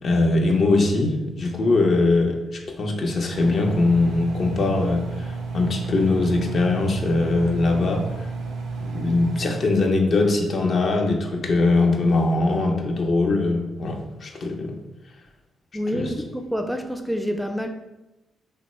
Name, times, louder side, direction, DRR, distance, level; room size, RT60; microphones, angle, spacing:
voice 1, 0.0-8.3 8.8-14.7 15.9-16.1, left 2 dB, 55° left, 0.6 m, -21 dB
Engine, 3.3-9.5, right 3 dB, 75° right, 0.4 m, -32 dB
voice 2, 15.7-17.7, equal, ahead, 0.3 m, -27 dB
2.9 x 2.1 x 4.1 m
supercardioid pair, 50°, 0 cm